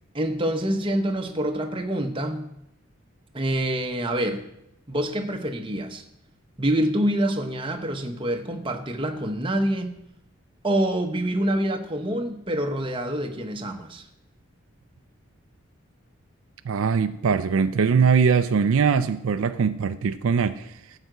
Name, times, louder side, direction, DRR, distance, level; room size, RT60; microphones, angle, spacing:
voice 1, 0.1-2.5 3.3-4.4 4.9-6.0 6.6-9.9 10.6-14.1, right 1 dB, 25° right, 4 dB, 0.9 m, -26 dB
voice 2, 16.7-20.7, right 6 dB, 70° right, 11 dB, 0.4 m, -21 dB
12.5 x 5.0 x 8.0 m, 0.82 s
head